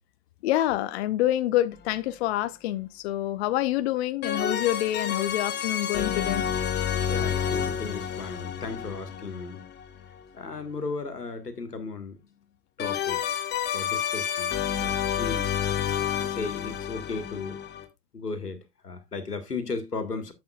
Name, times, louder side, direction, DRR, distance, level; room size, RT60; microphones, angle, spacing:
voice 1, 0.4-6.4, left 14 dB, 45° left, 0.7 m, -27 dB
sound 1, 1.7-1.8 4.2-10.2 12.8-17.9, left 9 dB, 20° left, 1.2 m, -29 dB
voice 2, 7.1-9.6 10.3-12.2 12.8-13.2 13.7-15.6 16.2-17.6 18.1-20.3, left 4 dB, 85° left, 1.7 m, -35 dB
10.5 x 7.7 x 2.4 m
figure-of-eight pair, 100°, 46 cm